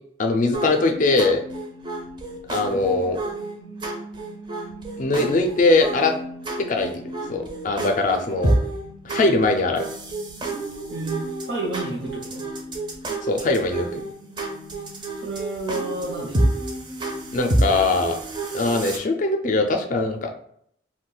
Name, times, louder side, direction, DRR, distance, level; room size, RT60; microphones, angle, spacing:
voice 1, 0.2-1.4 2.5-3.2 5.0-6.1 6.6-7.0 7.3-8.5 9.0-9.9 13.2-14.0 17.3-18.2 18.5-20.3, left 3 dB, 40° left, 5 dB, 0.4 m, -21 dB
sound 1, 0.5-19.0, right 1 dB, 25° right, 0.4 m, -29 dB
voice 2, 10.9-12.4 15.2-16.4, right 2 dB, 65° right, -4 dB, 0.6 m, -31 dB
2.4 x 2.2 x 3.8 m, 0.67 s
head